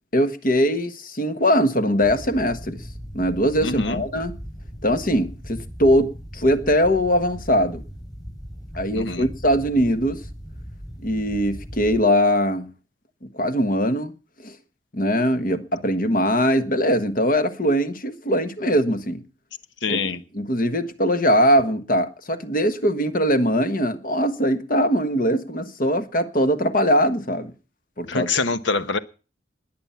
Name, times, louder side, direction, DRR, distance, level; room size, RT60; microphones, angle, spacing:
voice 1, 0.1-2.8 3.1-4.4 4.8-7.8 8.7-10.2 11.0-12.7 13.2-14.1 14.4-14.6 14.9-19.2 19.9-27.5 28.0-28.3, equal, 45° left, 1.4 m, -21 dB
sound 1, 2.0-12.0, equal, 20° left, 6.5 m, -38 dB
voice 2, 3.6-4.0 8.9-9.3 19.8-20.2 28.1-29.0, left 4 dB, 75° left, 1.2 m, -25 dB
20.5 x 8.9 x 5.8 m
head